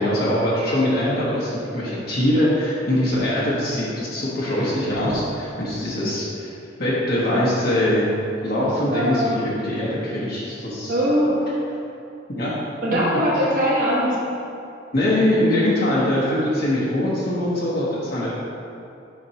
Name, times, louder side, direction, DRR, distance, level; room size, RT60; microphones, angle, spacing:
voice 1, 0.0-6.5 6.8-8.1 8.4-11.0 12.4-12.5 14.9-18.3, left 1 dB, 50° left, -7 dB, 1.2 m, -22 dB
voice 2, 8.9-9.3 10.9-11.4 12.8-14.2, equal, 45° right, -5 dB, 1.4 m, -21 dB
7.3 x 5.9 x 2.9 m, 2.6 s
head